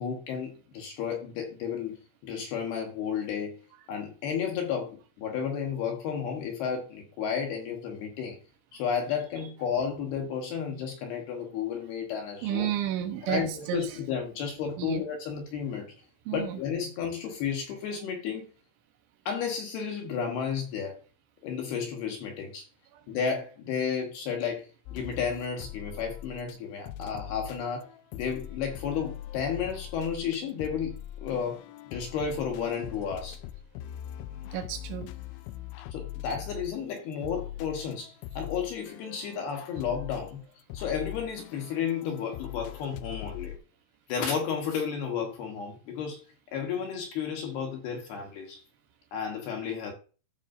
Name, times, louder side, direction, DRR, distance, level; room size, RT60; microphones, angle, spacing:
voice 1, 0.0-2.0 2.2-3.6 3.9-8.4 8.7-12.7 13.2-15.9 16.3-18.5 19.3-21.0 21.4-22.6 23.1-27.9 28.1-33.4 35.9-40.4 40.7-43.6 44.1-46.2 46.5-48.6 49.1-49.9, left 7 dB, 70° left, 2.7 m, -32 dB
voice 2, 12.4-14.0 14.8-15.1 16.3-16.6 22.9-23.0 34.5-35.1, right 11 dB, 75° right, 3.1 m, -32 dB
sound 1, 24.9-26.6 26.9-43.6, left 13 dB, 85° left, 2.8 m, -42 dB
14.5 x 5.2 x 2.6 m
omnidirectional pair, 5.5 m